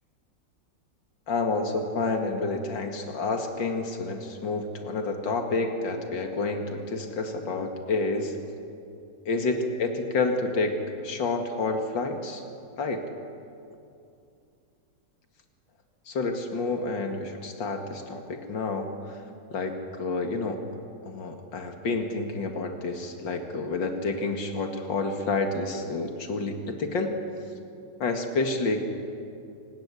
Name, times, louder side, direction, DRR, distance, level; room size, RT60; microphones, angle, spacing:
voice 1, 1.3-8.4 9.3-10.8 11.0-12.4 12.8-13.0 16.1-19.2 19.5-20.6 21.0-27.1 28.0-28.8, left 3 dB, 80° left, 4 dB, 2.7 m, -29 dB
27.0 x 17.5 x 9.9 m, 2.6 s
omnidirectional pair, 2.0 m